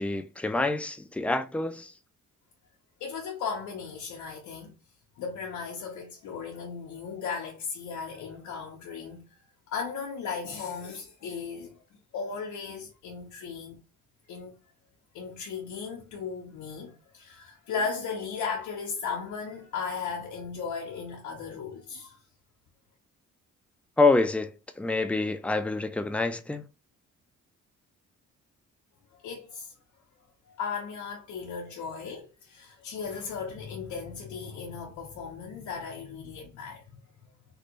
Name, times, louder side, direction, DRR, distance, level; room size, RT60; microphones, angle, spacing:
voice 1, 0.0-1.9 24.0-24.5 24.8-26.6, left 3 dB, 5° left, 0.3 m, -26 dB
voice 2, 3.0-4.8 5.2-9.3 9.7-11.8 12.1-13.8 14.3-14.5 15.1-22.2 29.2-29.7 30.5-37.0, left 5 dB, 80° left, 0.8 m, -36 dB
3.2 x 2.5 x 3.0 m
cardioid pair, 90°, 30 cm